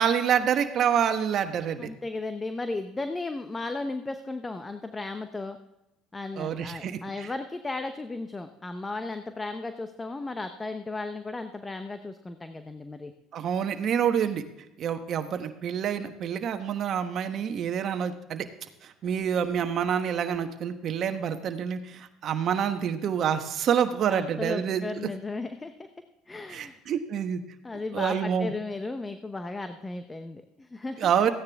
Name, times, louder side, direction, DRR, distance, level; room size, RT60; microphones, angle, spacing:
voice 1, 0.0-1.9 6.4-7.3 13.3-14.4 14.8-18.5 18.8-25.1 26.5-27.4 27.9-28.5 31.0-31.3, right 8 dB, 55° right, 8 dB, 1.2 m, -27 dB
voice 2, 1.8-5.6 6.1-13.1 24.1-25.9 26.3-26.8 27.6-31.1, left 3 dB, 20° left, 8 dB, 0.8 m, -35 dB
15.5 x 9.7 x 3.6 m, 0.90 s
supercardioid pair, 80°, 0 cm